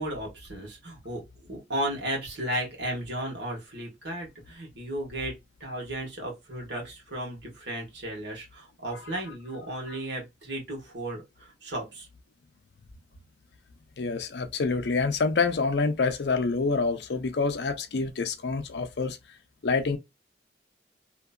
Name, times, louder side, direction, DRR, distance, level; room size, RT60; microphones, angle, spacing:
voice 1, 0.0-5.3 5.6-12.1, right 1 dB, 75° right, 1.4 m, -34 dB
voice 2, 14.0-19.2 19.6-20.0, left 4 dB, 70° left, 0.5 m, -27 dB
2.9 x 2.6 x 2.2 m
head